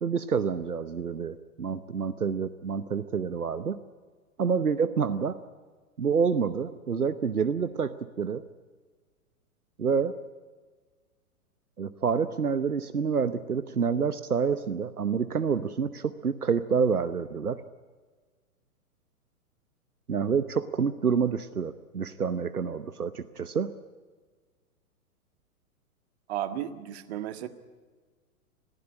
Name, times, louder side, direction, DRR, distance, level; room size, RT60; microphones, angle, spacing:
voice 1, 0.0-3.8 4.4-5.4 6.0-8.4 9.8-10.1 11.8-17.6 20.1-23.7, right 6 dB, 85° right, 13 dB, 1.0 m, -28 dB
voice 2, 26.3-27.5, right 11 dB, 45° right, 10 dB, 1.8 m, -33 dB
20.5 x 15.0 x 9.9 m, 1.4 s
figure-of-eight pair, 110°, 43 cm